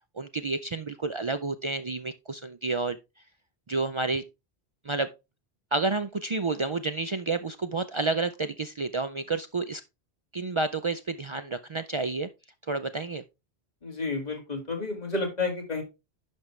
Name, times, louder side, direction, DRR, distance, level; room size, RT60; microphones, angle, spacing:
voice 1, 0.2-3.0 3.7-4.2 4.8-5.1 5.7-9.8 10.3-12.3 12.7-13.2, right 3 dB, 55° right, 0.3 m, -30 dB
voice 2, 13.8-15.8, left 3 dB, 40° left, 2.2 m, -31 dB
10.5 x 5.2 x 3.2 m
omnidirectional pair, 1.1 m